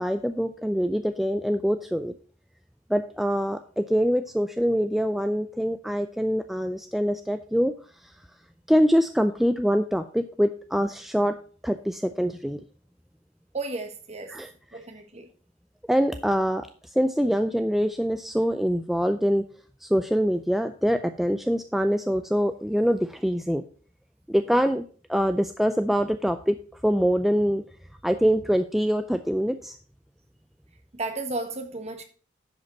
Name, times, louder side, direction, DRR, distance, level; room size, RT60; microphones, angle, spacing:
voice 1, 0.0-2.1 2.9-7.7 8.0-8.1 8.7-11.3 11.6-12.6 14.3-14.5 15.9-16.7 17.0-19.4 19.8-23.6 24.3-24.8 25.1-26.6 26.8-27.6 28.0-29.8, equal, ahead, 0.3 m, -24 dB
voice 2, 13.5-14.3 14.7-15.3 24.5-24.6 30.9-32.0, right 2 dB, 35° right, 1.3 m, -33 dB
10.5 x 5.2 x 5.2 m
head